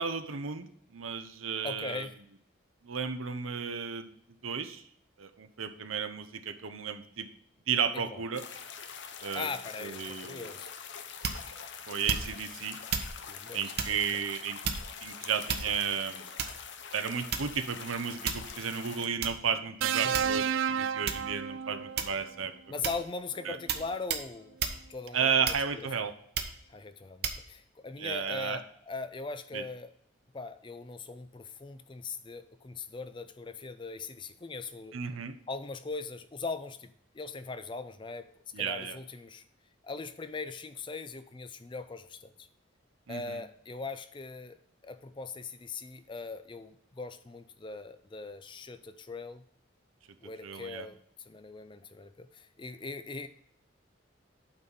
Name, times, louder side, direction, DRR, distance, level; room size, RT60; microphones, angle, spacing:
voice 1, 0.0-2.1 2.8-4.1 4.4-4.8 5.2-7.3 7.7-8.4 9.2-9.5 9.8-10.5 11.9-12.8 13.5-14.6 15.0-16.3 16.9-22.5 23.5-23.6 25.1-26.1 28.0-28.6 29.5-29.6 34.9-35.4 38.5-39.0 43.1-43.4 50.4-50.9, right 6 dB, 90° right, 8 dB, 0.8 m, -33 dB
voice 2, 1.6-2.2 7.9-8.2 9.3-10.7 13.3-13.7 20.0-20.4 22.7-24.6 24.9-25.4 26.0-26.1 26.7-29.9 30.3-35.0 35.5-38.3 38.6-39.4 39.8-42.5 43.1-44.6 44.8-49.4 50.2-53.3, left 4 dB, 25° left, 11 dB, 0.4 m, -40 dB
sound 1, 8.3-19.1, left 6 dB, 60° left, 0.7 m, -44 dB
sound 2, 11.2-11.6 12.1-12.5 12.9-13.1 13.8-14.0 14.6-15.0 15.5-15.9 16.4-16.7 17.3-17.7 18.3-18.6 19.2-19.4 20.1-20.6 21.1-21.3 22.0-22.3 22.8-23.1 23.7-23.8 24.1-24.3 24.6-24.8 25.4-25.8 26.3-26.6 27.2-27.4, right 6 dB, 50° right, 0.8 m, -33 dB
sound 3, 19.8-22.1 23.4-23.6, right 8 dB, 75° right, 0.3 m, -31 dB
8.8 x 4.1 x 5.4 m, 0.68 s
head